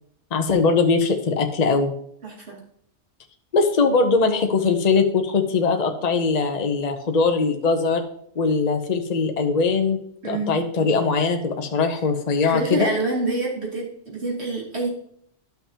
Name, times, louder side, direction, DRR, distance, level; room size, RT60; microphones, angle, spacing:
voice 1, 0.3-1.9 3.5-8.0 8.4-10.0 10.2-13.0, left 4 dB, 40° left, 5 dB, 0.8 m, -21 dB
voice 2, 2.2-2.6 10.2-10.5 12.5-14.9, right 2 dB, 65° right, -3 dB, 2.7 m, -26 dB
12.5 x 5.7 x 2.8 m, 0.67 s
omnidirectional pair, 1.2 m